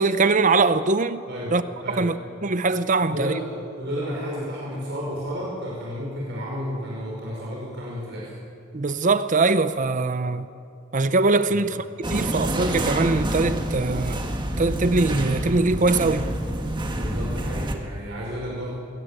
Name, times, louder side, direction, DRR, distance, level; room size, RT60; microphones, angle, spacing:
voice 1, 0.0-1.2 1.5-1.6 1.9-2.1 2.4-3.3 8.7-10.5 10.9-14.2 14.6-16.3, right 3 dB, 40° right, 0.7 m, -22 dB
voice 2, 3.0-8.3 11.5-11.6 16.9-18.7, equal, 60° right, 5.4 m, -32 dB
sound 1, 12.0-17.7, right 1 dB, 25° right, 1.7 m, -27 dB
22.5 x 17.5 x 9.0 m
head